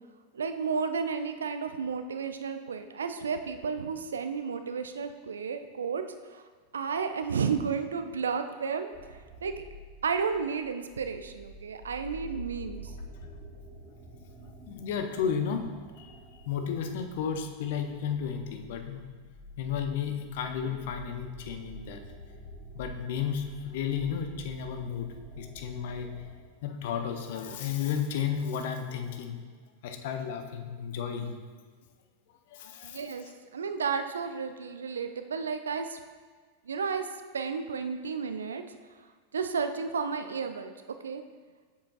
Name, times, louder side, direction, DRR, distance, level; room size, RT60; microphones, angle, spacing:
voice 1, 0.3-6.0 6.3-6.4 6.7-8.9 9.4-9.7 10.0-12.9 32.8-36.0 36.7-37.1 37.3-38.6 39.3-40.7 41.0-41.2, right 5 dB, 70° right, 8 dB, 0.4 m, -32 dB
sound 1, 8.9-26.4, right 1 dB, 20° right, 1.1 m, -48 dB
voice 2, 14.7-15.7 16.0-19.1 19.6-22.0 22.7-25.1 25.4-26.1 26.6-29.3 29.8-31.4 32.5-33.0, left 7 dB, 55° left, 6 dB, 0.6 m, -33 dB
7.4 x 6.9 x 2.4 m, 1.5 s
figure-of-eight pair, 90°, 0 cm